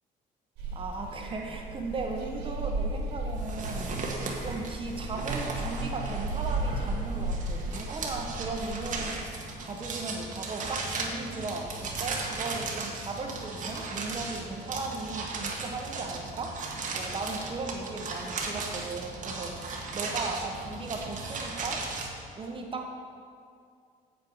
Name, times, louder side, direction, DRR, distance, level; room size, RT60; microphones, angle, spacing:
sound 1, 0.6-9.1, right 2 dB, 85° right, 2.3 m, -35 dB
voice 1, 0.7-3.9 4.4-19.5 19.9-21.8 22.3-23.0, right 3 dB, 30° right, 2 dB, 1.3 m, -37 dB
sound 2, 3.4-22.1, right 3 dB, 50° right, 1.4 m, -36 dB
8.1 x 7.9 x 4.9 m, 2.3 s
cardioid pair, 110°, 17 cm